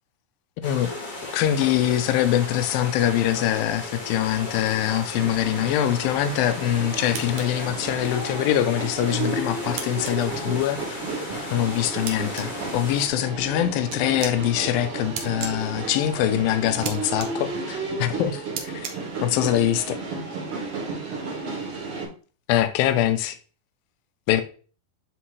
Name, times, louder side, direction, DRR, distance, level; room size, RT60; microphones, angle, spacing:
voice 1, 0.6-0.9 1.3-10.8 11.5-18.9 19.2-20.0 22.5-23.4 24.3-24.4, left 12 dB, 80° left, 2.3 m, -23 dB
sound 1, 0.6-13.1, left 2 dB, 50° left, 1.2 m, -36 dB
sound 2, 5.1-22.1, right 3 dB, 45° right, 2.2 m, -33 dB
sound 3, 7.1-7.5 9.8-10.1 12.1-12.5 13.9-14.3 15.2-15.5 16.8-16.9 17.2-17.3 18.6-18.9, right 7 dB, 70° right, 1.8 m, -32 dB
9.4 x 3.5 x 3.2 m
omnidirectional pair, 4.3 m